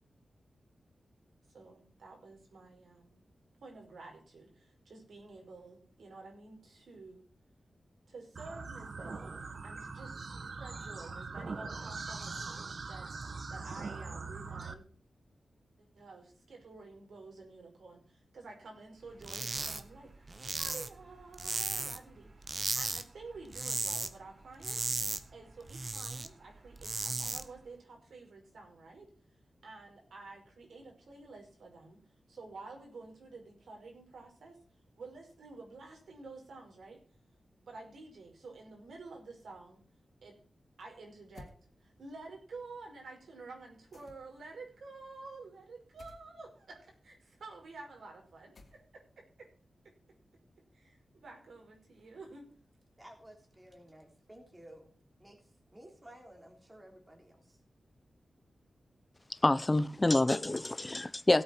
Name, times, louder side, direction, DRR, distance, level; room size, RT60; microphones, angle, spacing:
voice 1, 1.5-3.2 3.6-7.2 8.1-13.1 13.5-14.9 15.8-22.3 22.7-24.8 25.3-29.1 29.6-32.0 32.3-34.6 35.0-37.0 37.6-39.8 40.2-40.4 40.8-41.5 41.8-49.2 50.7-52.5, right 3 dB, 85° right, 5.5 m, -50 dB
sound 1, 8.4-14.7, right 4 dB, 50° right, 1.2 m, -42 dB
sound 2, 19.2-19.8 20.1-22.1 22.4-23.0 23.3-24.1 24.4-26.3 26.6-27.4, right 3 dB, 35° right, 1.1 m, -35 dB
sound 3, 41.3-41.6 43.9-44.5 46.0-46.3 48.5-49.1, left 2 dB, 55° left, 2.7 m, -54 dB
voice 2, 53.0-54.9 55.2-57.6, right 1 dB, 15° right, 3.2 m, -55 dB
voice 3, 59.4-61.4, left 2 dB, 20° left, 0.7 m, -27 dB
17.0 x 8.5 x 4.5 m
wide cardioid pair, 135°, 0 cm